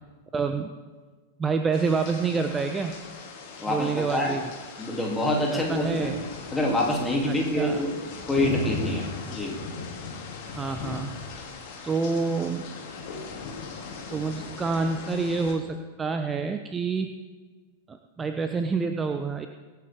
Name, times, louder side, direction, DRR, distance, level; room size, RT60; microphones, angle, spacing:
voice 1, 0.3-0.8 1.4-3.0 3.7-4.4 5.5-6.2 7.3-7.8 10.5-11.1 11.8-12.7 14.1-17.1 17.9-19.5, right 4 dB, 15° right, 7 dB, 0.7 m, -28 dB
sound 1, 1.7-15.5, left 4 dB, 45° left, 2.5 m, -37 dB
voice 2, 3.6-4.4 4.8-6.2 6.5-7.9 8.3-9.6, left 1 dB, 10° left, -1 dB, 2.7 m, -26 dB
23.5 x 9.2 x 3.5 m, 1.4 s
figure-of-eight pair, 95°, 0 cm